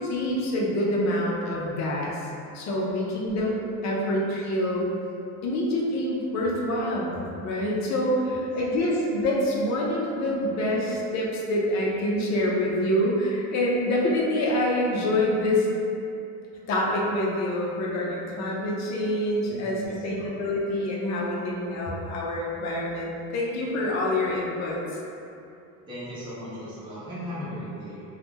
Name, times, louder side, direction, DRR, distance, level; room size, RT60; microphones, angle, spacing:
voice 1, 0.1-2.2 2.5-3.6 3.8-4.8 5.4-7.2 7.4-15.7 16.7-24.8, left 1 dB, 40° left, -3 dB, 0.6 m, -26 dB
voice 2, 19.5-20.3 25.9-28.0, equal, 10° right, -10 dB, 0.6 m, -37 dB
2.8 x 2.3 x 3.5 m, 2.7 s
cardioid pair, 140°, 40 cm